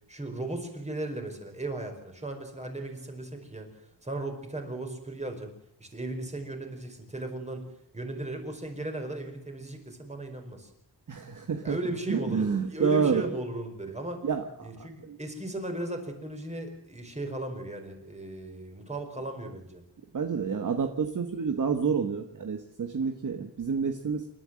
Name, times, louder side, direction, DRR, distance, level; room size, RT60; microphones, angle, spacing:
voice 1, 0.1-3.7 4.0-5.5 5.8-7.7 7.9-10.7 11.6-14.2 14.6-19.8, right 2 dB, 15° right, 4 dB, 4.9 m, -36 dB
voice 2, 11.1-11.8 12.1-13.3 14.2-15.2 20.1-24.3, right 6 dB, 45° right, 6 dB, 1.5 m, -29 dB
28.5 x 12.5 x 7.7 m, 0.74 s
wide cardioid pair, 140°, 41 cm